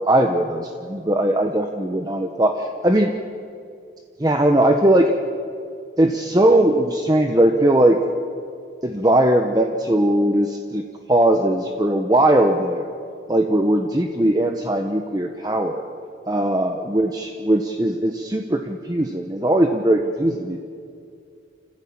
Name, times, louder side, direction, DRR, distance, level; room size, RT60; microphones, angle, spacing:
voice 1, 0.0-3.2 4.2-5.1 6.0-8.0 8.8-10.8 11.1-12.9 13.3-15.9 16.3-20.6, right 1 dB, 20° right, 4 dB, 1.0 m, -19 dB
28.5 x 15.0 x 8.8 m, 2.4 s
head